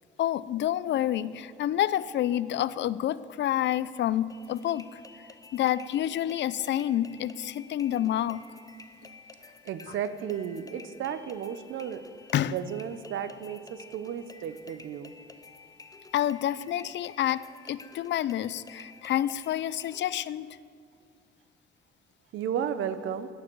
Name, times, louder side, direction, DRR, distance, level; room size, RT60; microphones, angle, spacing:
voice 1, 0.2-5.0 5.5-8.4 12.3-12.6 16.1-20.6, left 12 dB, 65° left, 17 dB, 0.5 m, -28 dB
sound 1, 4.3-20.3, left 3 dB, 20° left, 0.8 m, -52 dB
voice 2, 9.6-12.0 12.5-15.1 22.3-23.3, right 8 dB, 80° right, 12 dB, 0.8 m, -33 dB
17.5 x 11.5 x 4.7 m, 2.4 s
cardioid pair, 90°, 20 cm